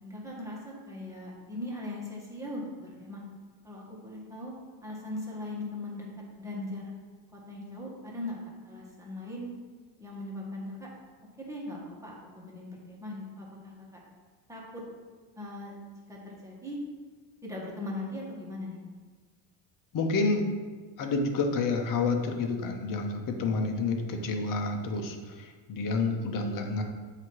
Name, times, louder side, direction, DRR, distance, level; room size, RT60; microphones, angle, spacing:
voice 1, 0.0-3.2 3.6-4.5 4.8-6.1 6.4-6.9 7.3-8.4 8.6-9.5 10.0-10.9 11.4-13.9 14.5-14.8 15.4-15.7 16.1-16.8 17.4-18.8, left 1 dB, 5° right, -4 dB, 1.5 m, -39 dB
voice 2, 19.9-20.5 21.0-26.8, left 3 dB, 50° left, 4 dB, 0.9 m, -29 dB
7.7 x 2.9 x 4.7 m, 1.4 s
cardioid pair, 115°, 42 cm